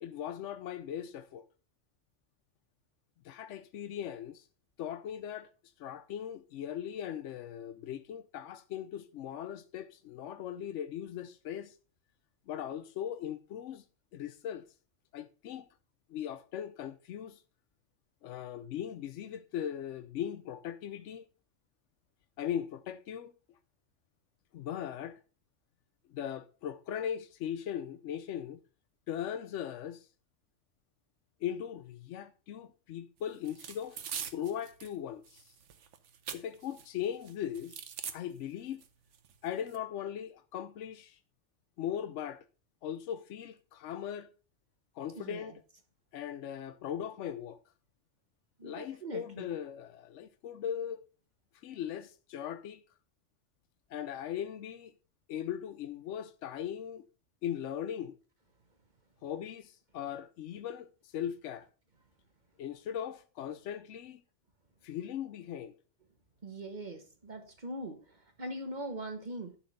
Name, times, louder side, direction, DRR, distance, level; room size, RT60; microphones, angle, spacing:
voice 1, 0.0-1.5 3.2-4.5 4.8-5.5 5.8-11.8 12.5-13.8 14.1-14.6 15.1-15.7 16.1-17.4 18.2-21.3 22.4-23.3 24.5-25.2 26.1-28.6 29.1-30.1 31.4-34.0 34.3-35.5 36.3-37.8 38.1-38.8 39.4-41.2 41.8-42.4 42.8-44.3 44.9-45.6 46.1-47.6 48.6-51.0 51.6-52.8 53.9-54.9 55.3-57.0 57.4-58.1 59.2-61.7 62.6-64.2 64.8-65.7, left 9 dB, 85° left, 0.9 m, -39 dB
sound 1, 33.4-34.9 35.3-36.9 37.2-38.2 38.8-38.9 39.1-39.8, right 8 dB, 90° right, 1.2 m, -43 dB
voice 2, 45.1-45.6 48.6-49.5 66.4-69.6, right 1 dB, 40° right, 1.3 m, -42 dB
11.5 x 4.3 x 5.3 m
omnidirectional pair, 1.2 m